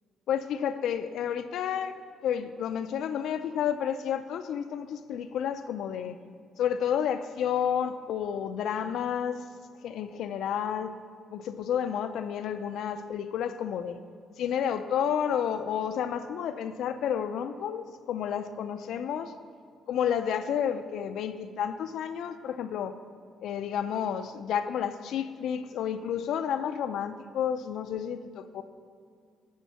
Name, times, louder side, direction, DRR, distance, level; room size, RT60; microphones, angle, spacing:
voice 1, 0.3-6.2 6.6-9.4 9.8-10.9 11.3-14.0 14.4-19.3 19.9-23.0 23.4-28.6, left 8 dB, 80° left, 9 dB, 0.4 m, -31 dB
11.0 x 4.4 x 6.9 m, 2.3 s
cardioid pair, 90°, 0 cm